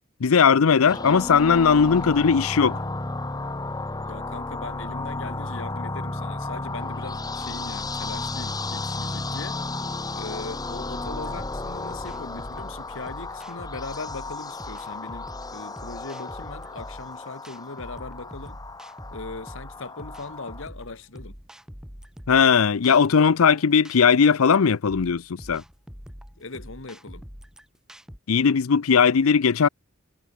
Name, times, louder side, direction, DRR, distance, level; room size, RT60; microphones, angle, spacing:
voice 1, 0.2-2.8 22.3-25.6 28.3-29.7, left 6 dB, 85° left, 0.6 m, -18 dB
sound 1, 0.9-20.6, left 2 dB, 20° left, 1.2 m, -33 dB
voice 2, 4.1-9.6 10.1-18.6 19.1-21.4 26.4-27.3, left 3 dB, 65° left, 1.6 m, -39 dB
sound 2, 11.0-28.2, equal, 5° right, 2.2 m, -44 dB
head